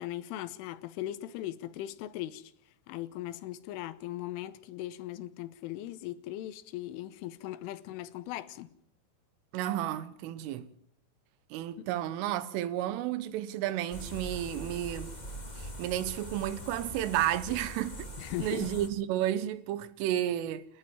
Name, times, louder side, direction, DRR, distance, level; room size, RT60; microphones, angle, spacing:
voice 1, 0.0-2.5 2.9-8.7 11.8-11.9 18.2-18.8, left 14 dB, 80° left, 3.5 m, -39 dB
voice 2, 9.5-10.7 11.5-15.2 15.6-18.1 18.4-20.7, right 12 dB, 85° right, 3.7 m, -32 dB
sound 1, 13.9-18.9, equal, 50° left, 0.5 m, -42 dB
30.0 x 11.0 x 9.5 m
omnidirectional pair, 5.6 m